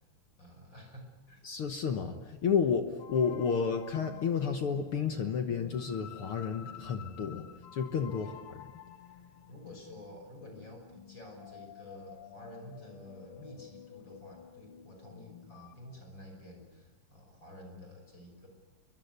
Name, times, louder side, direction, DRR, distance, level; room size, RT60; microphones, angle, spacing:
voice 1, 0.4-1.4 8.1-8.3 9.5-18.5, left 1 dB, 30° left, 3 dB, 6.4 m, -50 dB
voice 2, 1.4-7.5 7.7-8.3, left 6 dB, 60° left, 6 dB, 1.6 m, -31 dB
sound 1, 3.0-15.7, left 10 dB, 80° left, 1.2 m, -51 dB
27.0 x 23.5 x 6.9 m, 1.1 s
omnidirectional pair, 3.9 m